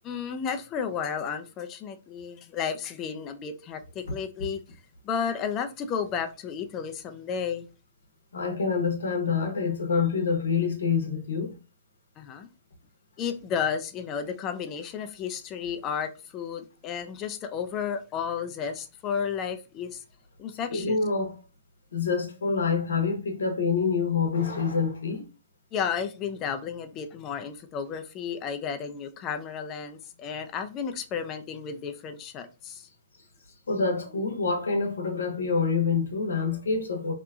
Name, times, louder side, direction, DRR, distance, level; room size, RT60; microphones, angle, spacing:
voice 1, 0.0-4.6 5.0-7.7 12.2-12.5 13.2-20.0 20.4-21.0 25.7-32.9, left 7 dB, 30° left, 0.4 m, -32 dB
voice 2, 8.3-11.5 20.7-21.4 21.9-25.2 33.7-37.1, left 5 dB, 75° left, 0.8 m, -26 dB
2.8 x 2.2 x 2.3 m
hypercardioid pair, 125°, 0 cm